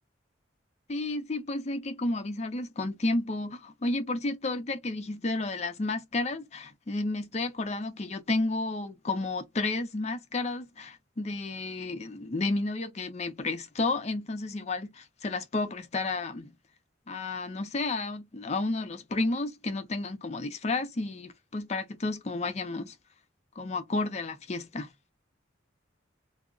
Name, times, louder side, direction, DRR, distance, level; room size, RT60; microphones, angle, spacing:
voice 1, 0.9-16.5 17.1-22.9 23.6-24.9, left 2 dB, 35° left, 0.5 m, -32 dB
2.3 x 2.1 x 3.6 m
head